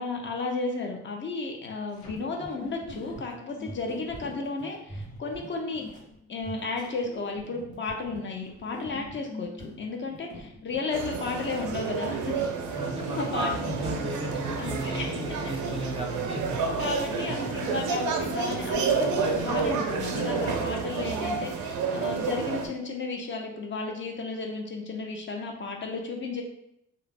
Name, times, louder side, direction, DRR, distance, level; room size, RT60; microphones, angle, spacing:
voice 1, 0.0-5.8 6.3-12.3 13.1-13.7 14.6-15.2 16.8-26.4, left 3 dB, 40° left, 1 dB, 0.5 m, -33 dB
sound 1, 1.9-19.9, left 1 dB, 80° left, 0.9 m, -44 dB
sound 2, 10.9-22.7, right 5 dB, 80° right, 0.5 m, -30 dB
voice 2, 12.7-16.6 17.3-17.5, right 1 dB, 20° right, 0 dB, 0.4 m, -34 dB
2.3 x 2.0 x 3.2 m, 0.77 s
cardioid pair, 90°, 30 cm